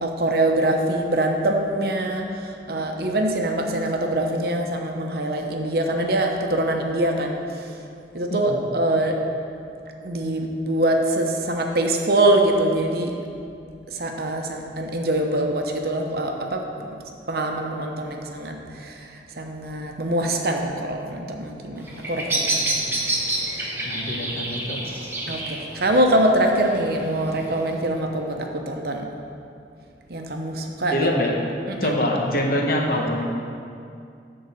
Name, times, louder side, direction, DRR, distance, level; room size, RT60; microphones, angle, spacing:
voice 1, 0.0-7.7 8.1-9.2 10.0-13.1 13.9-16.9 17.3-19.1 19.3-22.6 23.5-23.7 25.3-29.1 30.1-31.1 31.7-31.9, right 1 dB, 60° right, 2 dB, 0.8 m, -24 dB
Bird vocalization bird call bird song, 21.7-27.7, right 2 dB, 15° right, 1.1 m, -29 dB
voice 2, 23.8-24.8 30.9-31.3 31.8-33.2, left 1 dB, 55° left, 0 dB, 1.1 m, -24 dB
10.5 x 3.9 x 6.8 m, 2.5 s
head